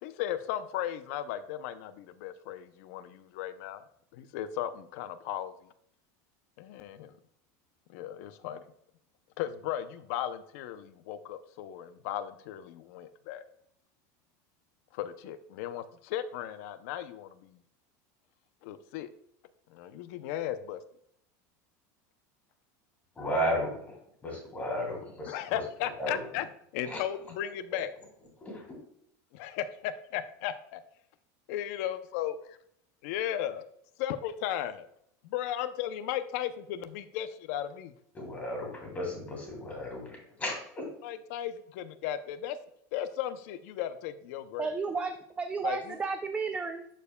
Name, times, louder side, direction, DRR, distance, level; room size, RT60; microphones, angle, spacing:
voice 1, 0.0-3.8 4.1-5.5 6.6-7.1 7.9-8.6 9.4-13.4 14.9-17.6 18.6-19.1 19.7-20.8 25.3-26.5 26.7-27.9 29.3-30.8 31.5-32.3 33.0-33.6 34.0-34.9 35.2-37.9 41.0-42.6 42.9-44.7 45.6-46.0, left 11 dB, 65° left, 12 dB, 0.5 m, -36 dB
voice 2, 23.2-24.0 24.2-25.4 26.0-26.2 26.9-27.0 28.4-28.7 38.1-40.8, equal, 15° left, 0 dB, 2.5 m, -34 dB
voice 3, 44.6-46.9, right 4 dB, 15° right, 7 dB, 0.4 m, -33 dB
12.0 x 4.6 x 2.2 m, 0.73 s
supercardioid pair, 155°, 9 cm